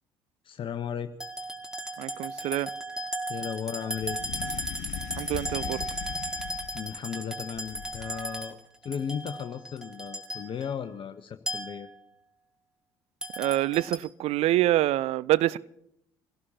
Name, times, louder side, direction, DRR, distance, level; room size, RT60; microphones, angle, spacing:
voice 1, 0.4-1.1 3.3-4.2 6.7-11.9, left 7 dB, 40° left, 1.0 m, -35 dB
sound 1, 1.2-10.7 11.5-11.9 13.2-14.0, equal, 5° right, 2.2 m, -36 dB
voice 2, 2.0-2.7 5.1-5.8 13.4-15.6, right 15 dB, 55° right, 0.5 m, -26 dB
sound 2, 4.0-7.0 7.5-8.4, left 12 dB, 60° left, 0.7 m, -40 dB
26.0 x 17.0 x 2.9 m
figure-of-eight pair, 55°, 13 cm